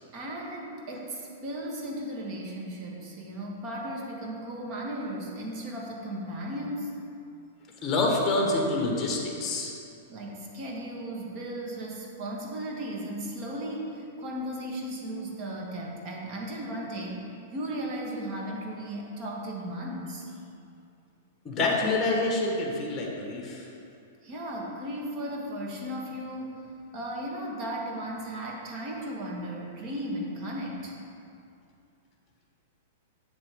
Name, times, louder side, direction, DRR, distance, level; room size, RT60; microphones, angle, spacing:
voice 1, 0.1-7.0 10.1-20.3 24.2-30.9, right 1 dB, 40° right, -2 dB, 1.5 m, -36 dB
voice 2, 7.8-9.7 21.4-23.7, left 2 dB, 20° left, -1 dB, 1.4 m, -27 dB
7.3 x 7.1 x 3.7 m, 2.6 s
hypercardioid pair, 140°, 0 cm